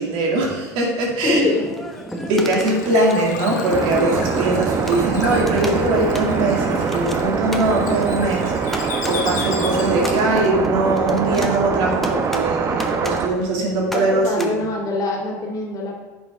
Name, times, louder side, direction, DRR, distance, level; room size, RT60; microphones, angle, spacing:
voice 1, 0.0-1.4 2.3-14.6, right 2 dB, 60° right, -1 dB, 2.2 m, -21 dB
voice 2, 1.2-1.7 13.9-16.0, left 2 dB, 40° left, -1 dB, 2.2 m, -23 dB
sound 1, 1.2-14.5, left 1 dB, 5° left, 1.1 m, -33 dB
Bird / Water, 2.0-10.4, left 6 dB, 85° left, 1.2 m, -34 dB
sound 2, 3.7-13.3, right 5 dB, 35° right, 0.9 m, -23 dB
9.9 x 6.4 x 3.4 m, 1.2 s
hypercardioid pair, 85°, 9 cm